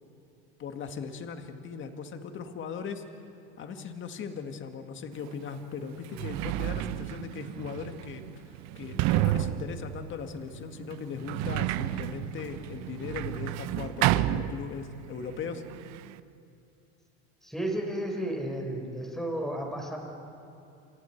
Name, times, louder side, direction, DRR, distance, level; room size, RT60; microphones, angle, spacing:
voice 1, 0.6-3.0 3.6-15.6, left 6 dB, 35° left, 6 dB, 2.0 m, -39 dB
Sliding door, 5.2-5.3 5.9-15.1 15.4-16.2, right 14 dB, 55° right, 0.8 m, -31 dB
voice 2, 17.4-20.0, right 1 dB, ahead, 1 dB, 4.9 m, -33 dB
29.5 x 27.0 x 4.6 m, 2.6 s
supercardioid pair, 125°, 33 cm